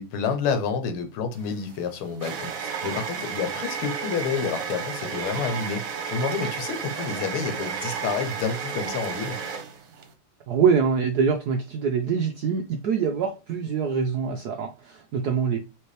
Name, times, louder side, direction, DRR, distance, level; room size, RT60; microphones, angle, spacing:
voice 1, 0.0-9.4, left 6 dB, 80° left, 1.7 m, -29 dB
sound 1, 1.4-10.1, right 6 dB, 65° right, 1.3 m, -32 dB
voice 2, 10.5-15.6, right 6 dB, 80° right, 0.8 m, -24 dB
4.5 x 3.3 x 3.1 m
omnidirectional pair, 2.4 m